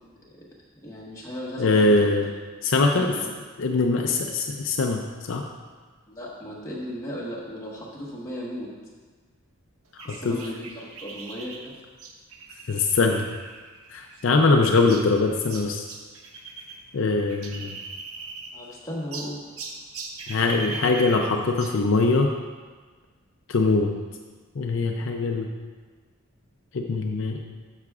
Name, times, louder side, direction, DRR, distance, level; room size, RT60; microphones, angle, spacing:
voice 1, 0.8-2.2 2.9-3.2 6.1-8.7 10.0-11.7 18.5-19.4, equal, 15° left, -5 dB, 1.3 m, -36 dB
voice 2, 1.6-2.3 2.6-3.1 3.6-5.0 5.3-5.4 10.0-10.4 12.7-13.3 13.9-15.8 16.9-17.8 20.3-22.3 23.5-23.9 24.6-25.5 26.7-27.4, left 3 dB, 60° left, 2 dB, 0.5 m, -22 dB
sound 1, 10.0-16.8 17.1-18.7 19.1-21.8, right 3 dB, 80° right, 0.8 m, -40 dB
12.5 x 5.8 x 2.4 m, 1.4 s
head